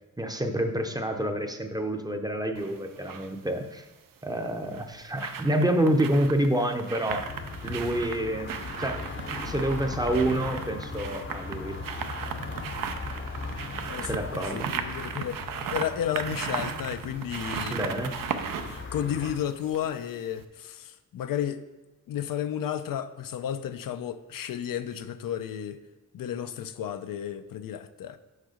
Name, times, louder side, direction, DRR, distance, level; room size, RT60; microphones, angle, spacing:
voice 1, 0.2-3.9 4.2-7.2 7.6-8.5 8.8-11.8 14.0-14.7 17.7-18.1, right 1 dB, 10° right, 0.6 m, -28 dB
sound 1, 2.5-3.3 4.5-20.1 20.4-20.5, right 7 dB, 75° right, 0.6 m, -36 dB
sound 2, 7.1-19.4, left 4 dB, 35° left, 0.6 m, -39 dB
voice 2, 13.9-15.4 15.7-17.8 18.7-21.6 22.1-25.8 26.1-28.2, left 9 dB, 85° left, 0.5 m, -32 dB
6.5 x 4.7 x 5.0 m
wide cardioid pair, 125°, 33 cm